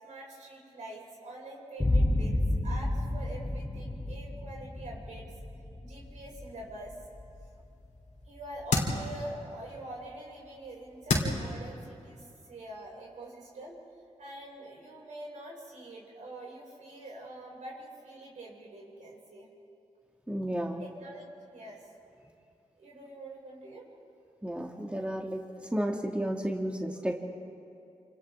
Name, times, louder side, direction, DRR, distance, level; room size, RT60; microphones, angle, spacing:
voice 1, 0.0-5.3 5.8-6.9 8.2-13.7 14.2-19.5 20.8-21.8 22.8-23.9, right 1 dB, 85° right, -3 dB, 6.0 m, -45 dB
sound 1, 1.8-9.2, left 1 dB, 20° left, 1.5 m, -32 dB
sound 2, 5.9-11.5, left 3 dB, 85° left, 3.2 m, -35 dB
voice 2, 20.3-20.8 24.4-25.4 25.7-27.2, right 1 dB, 10° right, 0 dB, 2.0 m, -32 dB
28.5 x 27.5 x 3.6 m, 2.6 s
cardioid pair, 65°, 12 cm